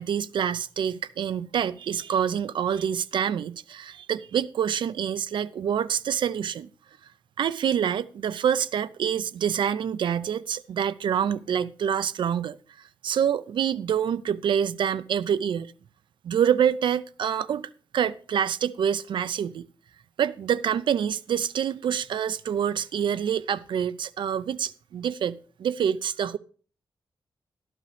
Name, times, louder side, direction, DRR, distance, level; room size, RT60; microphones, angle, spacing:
voice 1, 0.0-6.7 7.4-12.6 13.0-15.7 16.2-19.7 20.2-26.4, right 8 dB, 70° right, 0.5 m, -26 dB
13.0 x 12.0 x 3.4 m
wide cardioid pair, 180°, 9 cm